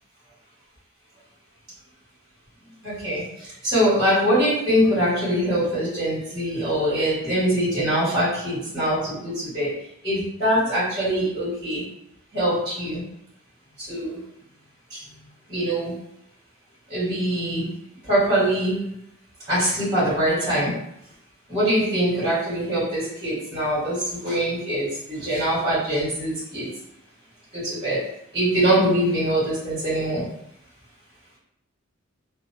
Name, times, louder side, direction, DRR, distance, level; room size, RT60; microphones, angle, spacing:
voice 1, 2.8-9.7 10.0-11.8 12.3-13.0 13.9-14.2 14.9-15.0 15.5-15.9 16.9-17.6 18.1-18.8 19.5-20.8 21.5-26.7 27.5-28.1 28.3-30.2, right 1 dB, 20° right, -10 dB, 1.4 m, -23 dB
2.6 x 2.1 x 2.6 m, 0.76 s
head